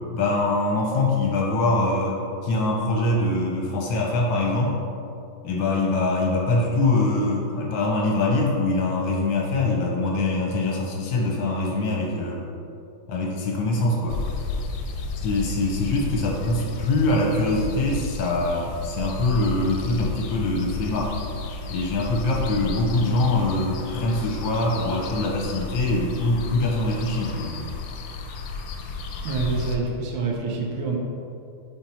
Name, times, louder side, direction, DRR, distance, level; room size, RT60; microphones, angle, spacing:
voice 1, 0.1-4.8 5.4-12.4 13.1-14.2 15.2-21.1 21.7-27.6, left 2 dB, 65° left, -1 dB, 1.5 m, -23 dB
sound 1, 14.1-29.8, left 4 dB, 85° left, 1.5 m, -33 dB
voice 2, 29.2-31.0, right 4 dB, 70° right, 0 dB, 1.5 m, -26 dB
4.5 x 4.4 x 5.4 m, 2.7 s
omnidirectional pair, 2.4 m